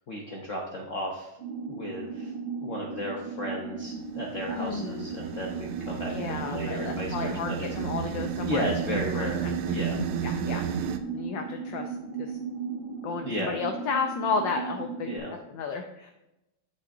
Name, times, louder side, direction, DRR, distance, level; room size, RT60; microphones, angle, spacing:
voice 1, 0.0-1.4 1.7-2.3 2.6-7.7 8.4-10.0 13.2-13.6 15.0-15.3, left 1 dB, 55° left, -1 dB, 0.8 m, -34 dB
sound 1, 1.4-15.2, right 5 dB, 30° right, 1.1 m, -37 dB
Monk Om, 3.9-11.0, right 8 dB, 85° right, 1.5 m, -33 dB
voice 2, 4.5-5.1 6.1-8.6 9.1-9.8 10.2-12.4 13.0-16.1, left 5 dB, 75° left, 5 dB, 1.2 m, -33 dB
8.3 x 6.7 x 2.6 m, 0.95 s
omnidirectional pair, 2.3 m